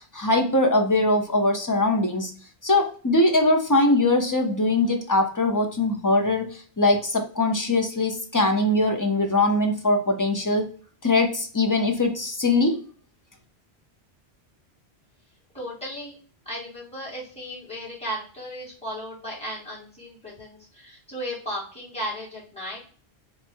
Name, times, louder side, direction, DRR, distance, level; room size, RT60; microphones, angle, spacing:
voice 1, 0.1-2.3 2.6-6.5 6.8-10.6 11.0-12.8, left 2 dB, 20° left, 4 dB, 0.6 m, -21 dB
voice 2, 15.5-16.2 16.5-22.8, equal, 5° left, -7 dB, 2.0 m, -35 dB
3.2 x 3.1 x 4.4 m, 0.42 s
omnidirectional pair, 1.1 m